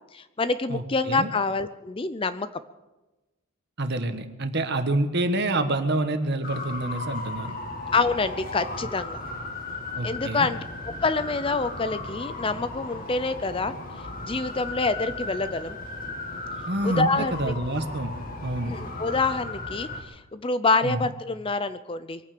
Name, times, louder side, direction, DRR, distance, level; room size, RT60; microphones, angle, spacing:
voice 1, 0.1-2.5 7.9-9.2 10.0-10.6 11.0-13.7 14.2-15.8 16.8-17.5 18.7-22.2, left 3 dB, 25° left, 13 dB, 0.5 m, -26 dB
voice 2, 0.7-1.3 3.8-7.5 9.9-10.5 16.7-18.1 18.4-18.7 20.8-21.0, right 2 dB, 50° right, 8 dB, 1.5 m, -27 dB
sound 1, 6.4-20.0, left 2 dB, 40° left, 2.3 m, -36 dB
23.0 x 9.3 x 6.8 m, 1.1 s
head